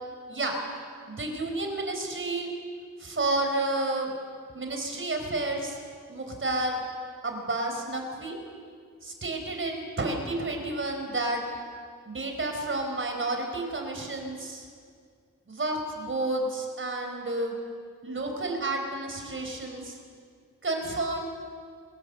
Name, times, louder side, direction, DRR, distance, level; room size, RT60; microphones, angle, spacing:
voice 1, 1.1-2.5 3.0-4.1 4.5-5.8 6.1-6.8 7.2-8.4 9.0-11.4 12.1-14.7 15.5-17.6 18.0-20.0 20.6-21.2, right 2 dB, 40° right, 3 dB, 4.6 m, -30 dB
24.0 x 19.5 x 7.9 m, 2.1 s
wide cardioid pair, 110°, 31 cm